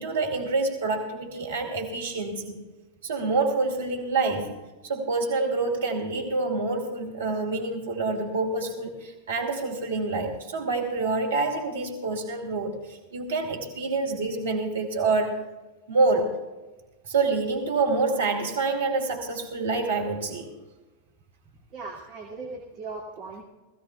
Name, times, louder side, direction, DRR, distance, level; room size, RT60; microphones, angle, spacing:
voice 1, 0.0-2.6 3.0-4.5 4.8-15.4 15.9-16.4 17.1-20.5, right 3 dB, 65° right, 2 dB, 2.3 m, -27 dB
voice 2, 21.7-23.4, right 3 dB, 40° right, -2 dB, 2.4 m, -38 dB
20.5 x 16.0 x 2.3 m, 1.2 s
figure-of-eight pair, 90°, 0 cm